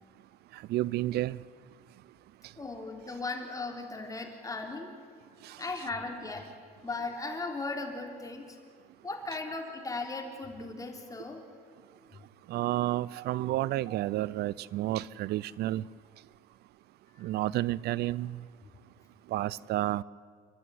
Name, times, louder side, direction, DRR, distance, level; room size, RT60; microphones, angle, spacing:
voice 1, 0.5-1.4 5.4-5.6 12.5-15.8 17.2-18.4 19.3-20.0, right 15 dB, 70° right, 0.5 m, -31 dB
voice 2, 2.6-4.9 5.6-6.5 6.8-8.6 9.0-11.4 17.2-17.3, left 3 dB, 20° left, 3.4 m, -37 dB
30.0 x 12.0 x 9.8 m
cardioid pair, 110°, 17 cm